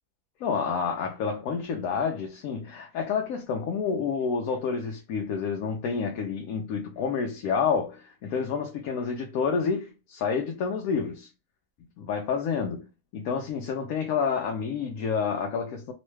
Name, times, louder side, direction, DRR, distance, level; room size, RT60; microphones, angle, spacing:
voice 1, 0.4-11.3 12.0-12.9 13.1-15.9, left 6 dB, 75° left, 1.0 m, -29 dB
3.0 x 2.2 x 3.1 m
omnidirectional pair, 1.6 m